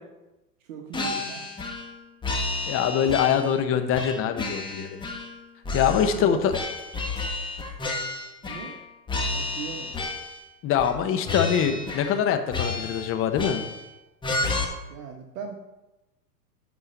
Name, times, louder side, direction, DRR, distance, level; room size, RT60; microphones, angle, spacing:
voice 1, 0.7-1.4 6.0-6.4 8.4-8.8 9.3-10.0 14.9-15.5, right 7 dB, 55° right, 2 dB, 1.5 m, -38 dB
sound 1, 0.9-1.9 2.2-3.6 3.9-5.4 5.6-8.8 9.1-10.5 10.8-11.0 11.3-12.2 12.5-13.9 14.2-14.6, left 3 dB, 10° left, 1.4 m, -31 dB
voice 2, 2.7-5.0 5.7-6.5 10.6-13.6, left 8 dB, 25° left, 8 dB, 1.1 m, -24 dB
11.5 x 4.5 x 6.9 m, 1.0 s
hypercardioid pair, 125°, 49 cm